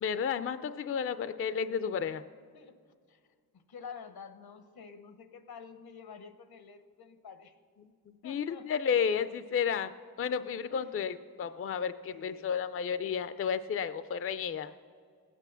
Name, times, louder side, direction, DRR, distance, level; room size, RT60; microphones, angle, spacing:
voice 1, 0.0-2.2 8.2-9.9 10.2-14.7, left 7 dB, 40° left, 12 dB, 0.4 m, -32 dB
voice 2, 3.7-7.5 8.2-8.7 10.7-10.9 12.1-12.5, left 6 dB, 85° left, 9 dB, 1.0 m, -49 dB
19.0 x 8.4 x 6.8 m, 2.1 s
wide cardioid pair, 155°, 36 cm